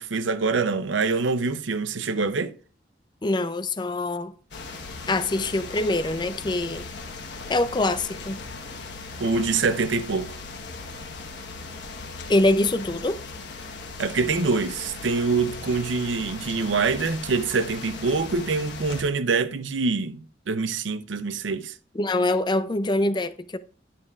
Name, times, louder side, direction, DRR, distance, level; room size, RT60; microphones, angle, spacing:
voice 1, 0.0-2.5 9.2-10.3 14.0-21.7, right 4 dB, 85° right, 0.6 m, -25 dB
voice 2, 3.2-4.3 5.1-6.8 7.5-8.4 12.3-13.2 21.9-23.6, left 2 dB, 25° left, 0.5 m, -24 dB
sound 1, 4.5-19.0, left 3 dB, 70° left, 1.2 m, -38 dB
11.0 x 7.1 x 2.4 m
head